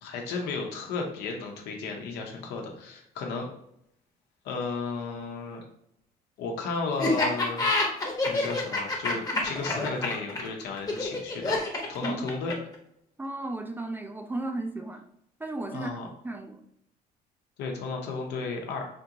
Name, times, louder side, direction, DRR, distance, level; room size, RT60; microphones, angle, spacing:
voice 1, 0.0-3.5 4.4-5.6 6.4-8.0 8.2-11.6 11.9-12.5 15.7-16.1 17.6-18.9, left 4 dB, 85° left, 2 dB, 0.9 m, -34 dB
Laughter, 7.0-12.8, left 2 dB, 20° left, 0.9 m, -27 dB
voice 2, 12.0-12.3 13.2-15.0 15.4-16.6, right 2 dB, 10° right, 5 dB, 0.4 m, -35 dB
4.4 x 2.5 x 2.9 m, 0.74 s
cardioid pair, 110°, 17 cm